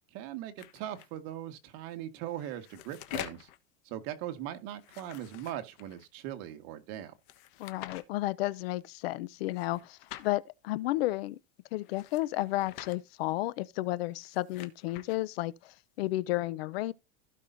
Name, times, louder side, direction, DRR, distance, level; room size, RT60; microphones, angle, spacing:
voice 1, 0.1-3.4 3.9-7.1, right 12 dB, 55° right, 1.7 m, -40 dB
sound 1, 0.6-1.1 2.2-3.6 4.8-6.1 7.2-8.0 9.5-10.3 11.8-13.0 14.1-15.2, left 14 dB, 60° left, 1.3 m, -46 dB
voice 2, 7.6-11.4 11.7-16.9, left 17 dB, 80° left, 0.7 m, -32 dB
15.5 x 5.6 x 2.7 m
supercardioid pair, 155°, 30 cm